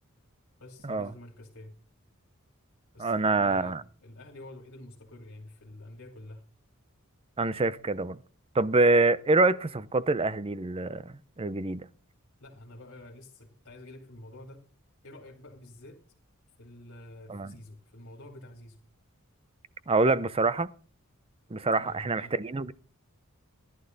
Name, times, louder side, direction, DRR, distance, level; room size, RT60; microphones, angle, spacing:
voice 1, 0.6-1.7 2.9-6.4 12.4-14.6 15.0-16.0 16.6-18.8 21.7-22.3, left 1 dB, 65° left, 2.9 m, -48 dB
voice 2, 3.0-3.8 7.4-8.2 8.5-11.0 11.4-11.9 17.3-17.5 19.9-20.7 21.5-22.7, right 3 dB, 25° right, 0.6 m, -25 dB
14.5 x 11.5 x 4.0 m
head